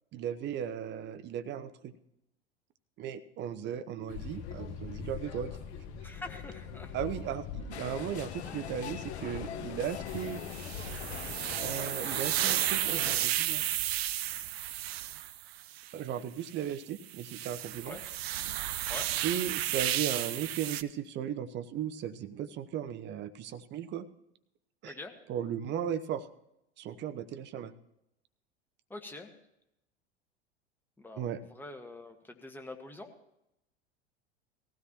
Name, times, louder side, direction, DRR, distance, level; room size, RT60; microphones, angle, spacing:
voice 1, 0.1-1.9 3.0-5.5 6.9-10.4 11.6-13.6 15.9-18.0 19.2-24.0 24.8-24.9 25.3-26.3 26.8-27.7 31.2-31.4, right 9 dB, 30° right, 11 dB, 0.8 m, -36 dB
sound 1, 4.1-11.7, left 7 dB, 45° left, 1.5 m, -43 dB
voice 2, 6.0-6.9 17.8-18.0 18.9-19.1 24.9-25.1 28.9-29.3 31.0-33.1, left 2 dB, 5° left, 4 dB, 1.5 m, -45 dB
sound 2, 7.7-13.3, left 10 dB, 70° left, 0.6 m, -43 dB
sound 3, 10.1-15.9 16.5-16.6 17.1-20.8, right 13 dB, 65° right, 0.6 m, -33 dB
18.5 x 15.5 x 3.0 m, 0.85 s
figure-of-eight pair, 80°, 34 cm